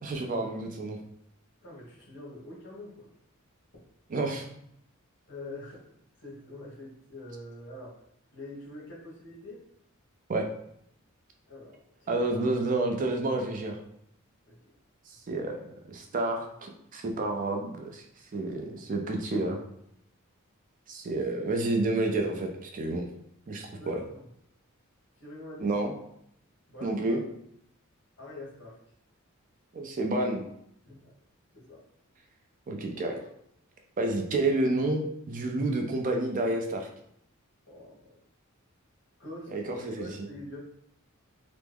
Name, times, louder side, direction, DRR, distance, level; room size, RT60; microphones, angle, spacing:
voice 1, 0.0-1.0 4.1-4.5 10.3-10.5 12.1-13.8 15.1-18.0 18.3-19.6 20.9-23.1 23.5-24.0 25.6-25.9 26.8-27.2 29.7-30.4 32.7-33.2 34.0-36.9 39.5-40.3, right 2 dB, 40° right, 3 dB, 0.4 m, -29 dB
voice 2, 1.6-3.1 5.3-5.9 6.2-7.9 8.3-9.6 11.5-12.3 14.5-14.6 23.8-24.2 25.2-25.7 26.7-27.2 28.2-28.8 30.8-31.1 31.5-31.8 37.7-38.1 39.2-39.5 40.0-40.6, left 1 dB, 55° left, -5 dB, 1.4 m, -45 dB
3.3 x 2.0 x 3.4 m, 0.72 s
head